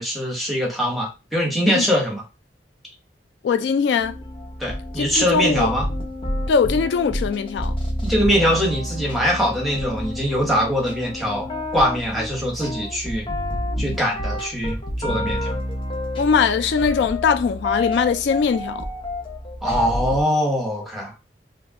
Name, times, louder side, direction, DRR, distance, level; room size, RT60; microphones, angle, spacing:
voice 1, 0.0-2.2 4.6-5.9 8.0-13.3 13.8-15.5 19.6-21.1, equal, ahead, 1.0 m, -22 dB
voice 2, 3.4-4.1 5.0-5.7 6.5-7.7 16.2-18.8, left 6 dB, 75° left, 0.3 m, -21 dB
sound 1, 4.0-20.2, left 1 dB, 30° left, 0.6 m, -29 dB
2.5 x 2.2 x 3.5 m
head